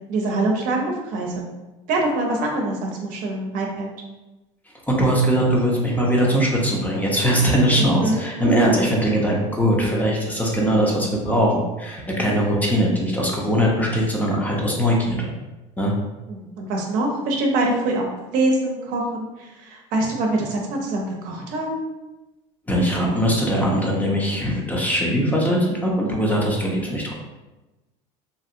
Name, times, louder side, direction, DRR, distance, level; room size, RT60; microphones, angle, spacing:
voice 1, 0.1-1.5 1.9-3.9 7.8-8.5 16.3-21.8, right 2 dB, 65° right, 0 dB, 0.7 m, -24 dB
voice 2, 4.9-15.3 15.8-15.9 22.7-27.1, equal, 10° left, -2 dB, 0.6 m, -21 dB
2.8 x 2.7 x 2.5 m, 1.1 s
supercardioid pair, 105°, 15 cm